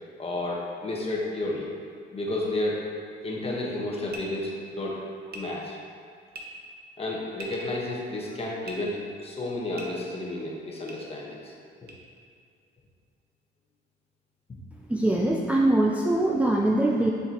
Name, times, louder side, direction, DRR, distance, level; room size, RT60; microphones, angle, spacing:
voice 1, 0.2-1.7 2.1-2.8 3.2-5.0 5.3-5.8 7.0-11.5 11.8-11.9, left 2 dB, 30° left, -2 dB, 1.2 m, -31 dB
sound 1, 4.1-4.2 5.3-5.4 6.3-6.4 7.3-7.7 8.6-8.7 9.7-9.9 10.9-11.0 11.9-12.0, right 2 dB, 55° right, 0.9 m, -40 dB
voice 2, 14.9-17.1, right 1 dB, 5° right, -2 dB, 0.4 m, -22 dB
6.6 x 4.9 x 2.9 m, 2.2 s
cardioid pair, 90°, 20 cm